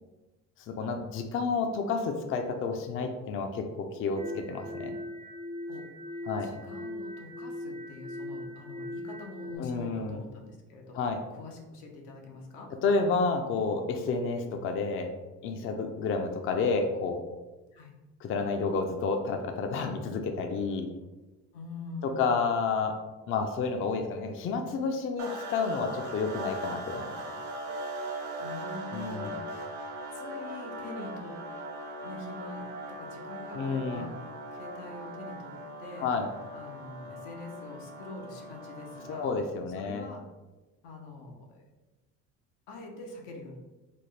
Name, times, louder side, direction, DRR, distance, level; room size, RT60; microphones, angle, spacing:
voice 1, 0.7-4.9 6.3-6.5 9.6-10.2 10.9-11.2 12.8-15.1 15.4-17.2 18.2-20.9 22.0-23.0 23.3-27.1 28.9-29.4 33.5-34.1 36.0-36.3 39.1-40.0, left 4 dB, 40° left, 5 dB, 0.4 m, -30 dB
sound 1, 4.2-9.6, left 1 dB, 20° right, 0.5 m, -40 dB
voice 2, 6.4-11.0 11.3-12.7 17.7-17.9 21.5-22.3 28.4-29.8 30.1-31.3 32.0-32.6 32.9-34.2 34.5-35.5 35.8-36.1 36.5-39.3 39.8-40.2 40.8-41.6 42.7-43.6, left 2 dB, 85° left, 1 dB, 0.8 m, -44 dB
sound 2, 25.2-39.4, right 1 dB, 70° right, 0.8 m, -40 dB
4.1 x 2.1 x 3.2 m, 1.1 s
cardioid pair, 100°, 31 cm